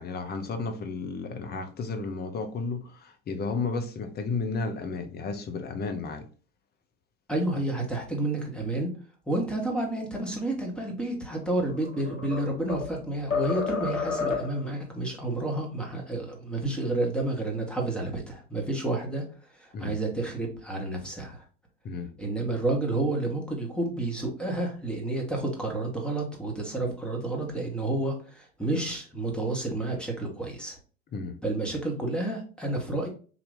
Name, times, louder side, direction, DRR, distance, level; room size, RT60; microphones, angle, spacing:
voice 1, 0.0-6.3 19.7-20.0 21.8-22.1 31.1-31.4, left 4 dB, 25° left, 0.8 m, -33 dB
voice 2, 7.3-8.9 9.3-19.2 19.6-21.4 22.2-30.8 31.4-33.1, right 2 dB, ahead, 1.4 m, -30 dB
sound 1, 11.6-13.0 13.3-14.7, left 5 dB, 90° left, 1.0 m, -30 dB
3.9 x 2.8 x 3.5 m
hypercardioid pair, 80°, 38 cm